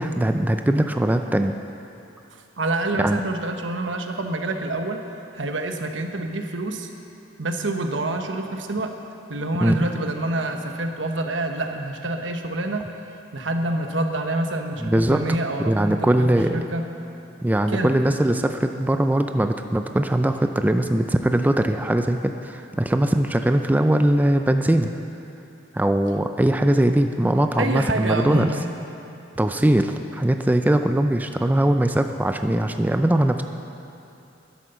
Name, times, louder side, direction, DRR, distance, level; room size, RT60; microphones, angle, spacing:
voice 1, 0.0-1.6 3.0-3.2 9.6-9.8 14.8-15.2 15.6-16.6 17.4-24.9 25.7-28.5 29.4-33.4, right 1 dB, 10° right, 6 dB, 0.4 m, -21 dB
voice 2, 2.6-5.0 5.3-6.9 7.4-8.9 9.3-12.8 13.3-16.8 17.7-17.9 27.6-28.7, right 2 dB, 80° right, 5 dB, 1.1 m, -27 dB
12.5 x 11.0 x 6.8 m, 2.8 s
head